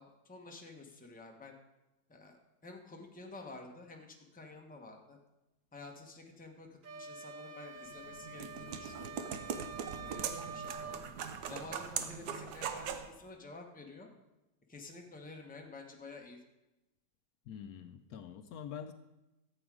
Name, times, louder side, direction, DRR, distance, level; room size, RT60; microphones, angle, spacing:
voice 1, 0.0-1.5 2.1-5.2 5.7-9.6 10.0-11.0 11.4-14.1 14.7-16.4, left 3 dB, 5° left, 1 dB, 0.9 m, -50 dB
sound 1, 6.8-11.1, right 4 dB, 40° right, 0.8 m, -46 dB
sound 2, 7.9-13.1, right 7 dB, 75° right, 1.3 m, -41 dB
voice 2, 17.5-18.9, left 8 dB, 70° left, 9 dB, 1.0 m, -45 dB
13.0 x 8.0 x 4.9 m, 0.99 s
omnidirectional pair, 1.7 m